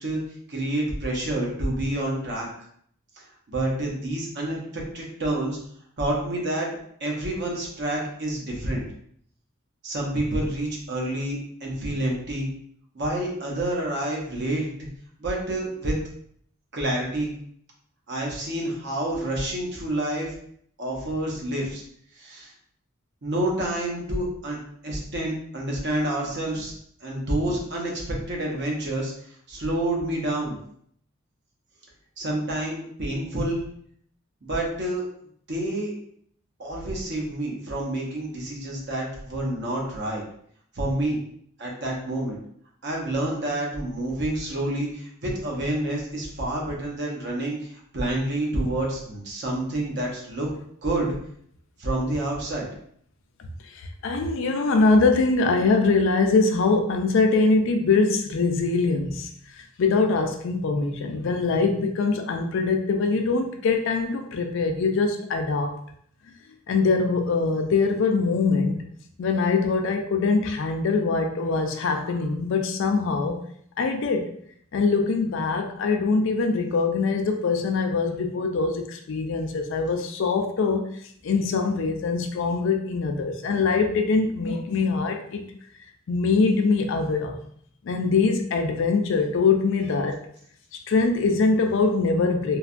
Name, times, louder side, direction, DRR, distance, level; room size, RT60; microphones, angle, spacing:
voice 1, 0.5-2.5 3.5-5.6 6.0-8.8 9.8-12.5 12.9-14.7 15.2-16.0 16.7-17.3 18.1-20.4 20.8-21.8 22.2-22.5 23.2-24.6 24.8-26.7 27.0-30.6 32.2-33.6 34.4-35.0 35.5-35.9 36.6-40.2 40.7-41.2 41.6-42.4 42.8-50.5 50.8-51.1 51.8-52.7, right 1 dB, 55° right, -2 dB, 0.8 m, -28 dB
voice 2, 53.6-59.3 59.8-65.7 66.7-68.8 69.2-73.4 73.8-74.3 74.7-80.9 81.2-85.4 86.1-87.4 87.8-90.2 90.7-92.6, left 4 dB, 60° left, 5 dB, 0.4 m, -23 dB
3.2 x 2.2 x 2.5 m, 0.64 s
head